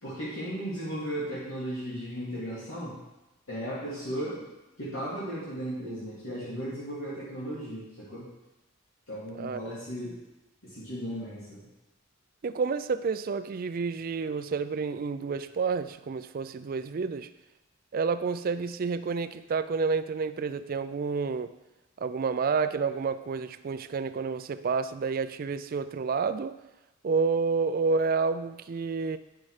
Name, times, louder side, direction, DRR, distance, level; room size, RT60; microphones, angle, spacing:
voice 1, 0.0-3.0 3.5-4.5 4.8-8.3 9.1-10.2 10.6-11.6, equal, 85° left, -9 dB, 2.6 m, -36 dB
voice 2, 12.4-17.3 17.9-21.5 22.0-26.6 27.0-29.2, right 5 dB, 45° right, 12 dB, 0.4 m, -29 dB
9.0 x 5.4 x 4.8 m, 0.99 s
head